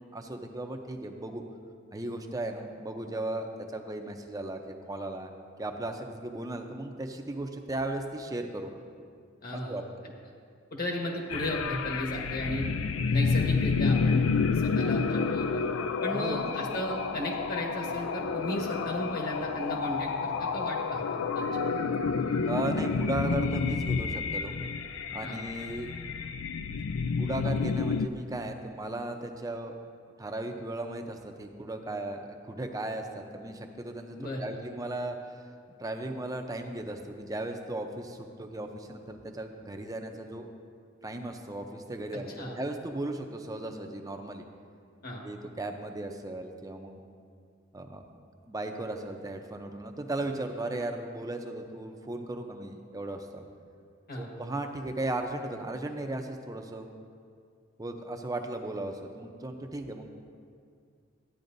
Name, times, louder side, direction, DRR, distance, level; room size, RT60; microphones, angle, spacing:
voice 1, 0.0-1.4 1.9-5.3 5.6-8.7 9.5-9.8 16.1-16.5 22.5-24.5 25.1-25.9 27.2-29.8 30.2-35.2 35.8-40.5 41.0-44.4 45.2-47.0 47.7-48.0 48.4-53.4 54.1-56.9 57.8-60.1, right 2 dB, 20° right, 5 dB, 0.6 m, -36 dB
voice 2, 9.4-9.8 10.7-12.7 13.1-15.6 16.0-21.0 21.3-21.6 25.2-25.4 34.2-34.6 42.4-42.5 45.0-45.2 54.1-54.3, left 1 dB, 50° left, 0 dB, 1.5 m, -35 dB
sound 1, 11.3-28.1, left 5 dB, 90° left, 0.4 m, -29 dB
14.0 x 9.6 x 2.6 m, 2.3 s
head